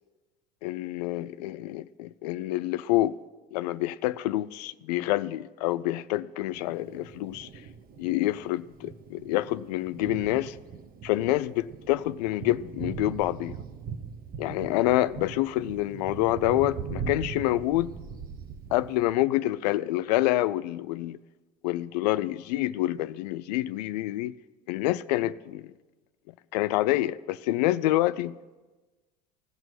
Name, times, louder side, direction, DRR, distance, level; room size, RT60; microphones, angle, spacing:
voice 1, 0.6-3.1 3.5-7.5 8.0-10.6 11.0-13.6 14.4-17.9 18.7-21.2 21.6-24.3 24.7-25.7 26.5-28.4, left 16 dB, 75° left, 0.4 m, -27 dB
Thunder, 6.5-19.1, right 6 dB, 45° right, 1.0 m, -40 dB
16.0 x 6.0 x 9.3 m
hypercardioid pair, 65°, 21 cm